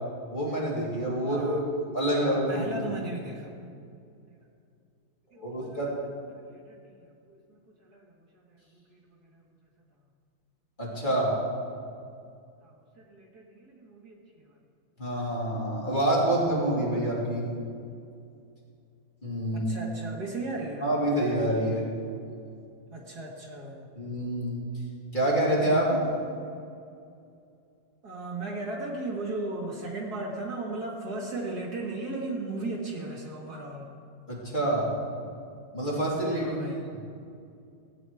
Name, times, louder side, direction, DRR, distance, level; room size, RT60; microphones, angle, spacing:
voice 1, 0.3-2.8 5.4-5.9 10.8-11.3 15.0-17.4 19.2-19.7 20.8-21.8 24.0-24.6 25.1-26.0 34.3-34.9 35.7-37.0, right 1 dB, 25° left, -6 dB, 2.9 m, -27 dB
voice 2, 1.3-1.6 2.2-3.5 5.3-5.8 6.4-9.0 9.3-9.4 12.6-14.5 19.5-20.9 22.9-23.9 28.0-33.9 36.3-36.9, right 2 dB, 55° right, -1 dB, 2.0 m, -37 dB
17.0 x 9.0 x 4.8 m, 2.4 s
omnidirectional pair, 2.0 m